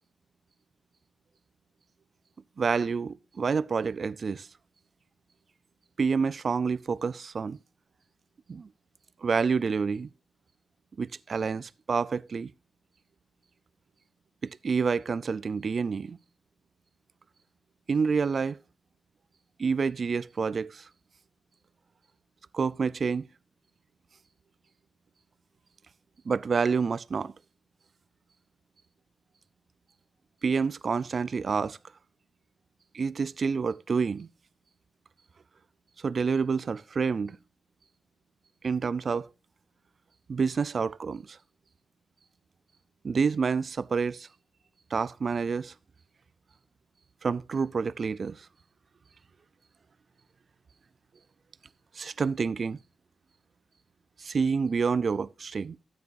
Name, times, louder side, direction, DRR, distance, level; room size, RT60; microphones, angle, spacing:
voice 1, 2.6-4.5 6.0-7.6 8.5-8.7 9.2-10.1 11.0-12.5 14.4-16.2 17.9-18.6 19.6-20.9 22.5-23.3 26.3-27.3 30.4-31.8 32.9-34.3 36.0-37.4 38.6-39.3 40.3-41.4 43.0-44.3 44.9-45.7 47.2-48.5 51.9-52.8 54.2-55.8, right 5 dB, 45° right, 0.4 m, -28 dB
13.5 x 9.7 x 2.6 m
cardioid pair, 100°, 0 cm